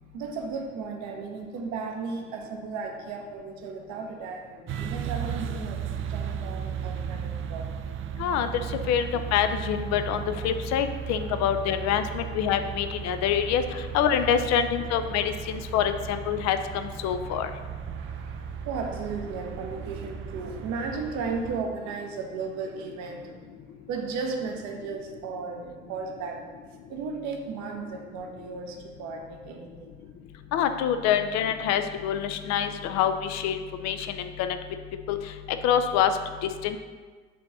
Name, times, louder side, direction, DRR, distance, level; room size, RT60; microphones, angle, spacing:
voice 1, 0.0-5.8 6.1-7.7 8.6-8.8 11.9-12.0 14.3-14.5 16.0-16.2 17.3-17.4 17.9-23.5 23.9-26.4 26.9-30.0 30.9-31.1 33.8-33.9, right 4 dB, 60° right, 3 dB, 0.8 m, -35 dB
sound 1, 4.7-21.6, right 8 dB, 40° right, 0.4 m, -36 dB
voice 2, 8.9-17.5 30.5-34.6 35.1-35.2 35.6-36.1 36.4-36.8, left 9 dB, 55° left, 9 dB, 0.5 m, -26 dB
5.2 x 3.4 x 5.3 m, 1.4 s
figure-of-eight pair, 50°, 33 cm